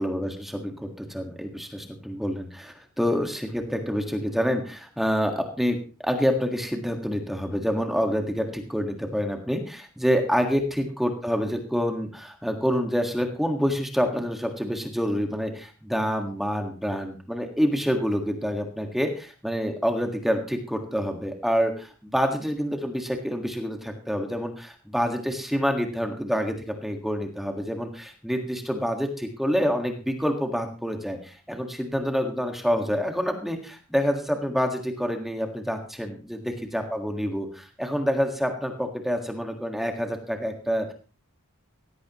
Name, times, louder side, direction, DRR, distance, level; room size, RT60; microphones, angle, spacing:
voice 1, 0.0-40.9, equal, ahead, 4 dB, 1.6 m, -27 dB
17.0 x 15.0 x 3.0 m, 0.35 s
head